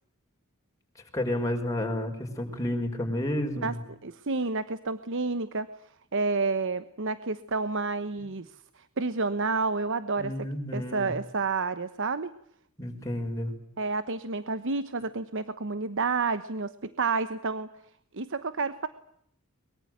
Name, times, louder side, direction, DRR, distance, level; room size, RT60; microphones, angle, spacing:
voice 1, 1.1-3.8 10.2-11.1 12.8-13.5, left 1 dB, 15° left, 2 dB, 5.4 m, -31 dB
voice 2, 4.0-5.7 6.1-8.5 8.8-10.3 10.7-12.3 13.8-17.7 18.1-18.9, right 4 dB, 60° right, 13 dB, 1.1 m, -30 dB
23.0 x 23.0 x 9.3 m, 0.71 s
head